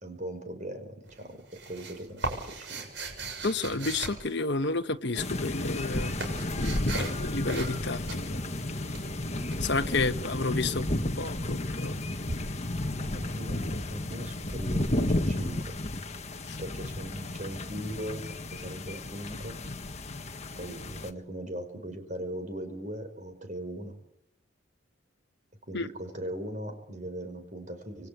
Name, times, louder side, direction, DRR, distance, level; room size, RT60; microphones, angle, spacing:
voice 1, 0.0-2.8 13.0-15.7 16.6-19.6 20.6-23.9 25.7-28.1, right 1 dB, 35° right, 5.1 m, -39 dB
sound 1, 1.1-4.9 5.6-7.2 7.5-7.8 8.1-10.0 12.3-12.4, right 3 dB, 60° right, 7.2 m, -38 dB
voice 2, 3.4-6.1 6.6-8.4 9.6-10.9 11.2-11.9 16.5-16.6 25.7-25.9, left 3 dB, 55° left, 1.4 m, -31 dB
sound 2, 5.1-21.1, left 1 dB, 30° left, 1.6 m, -33 dB
27.5 x 23.0 x 8.7 m
head